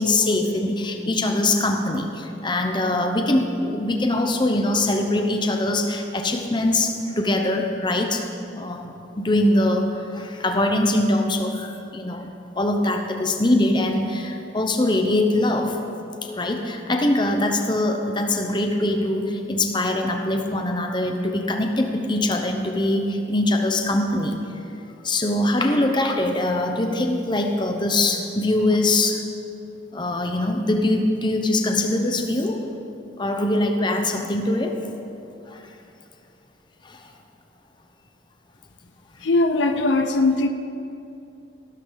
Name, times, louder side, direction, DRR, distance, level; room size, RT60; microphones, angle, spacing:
voice 1, 0.0-8.3 8.5-15.8 16.3-24.4 25.0-29.2 29.9-32.6 33.2-34.8 35.5-35.6 36.8-37.0, left 1 dB, 25° left, 4 dB, 0.9 m, -22 dB
voice 2, 39.2-40.5, left 2 dB, 75° left, 8 dB, 0.6 m, -20 dB
15.0 x 12.5 x 4.0 m, 2.7 s
head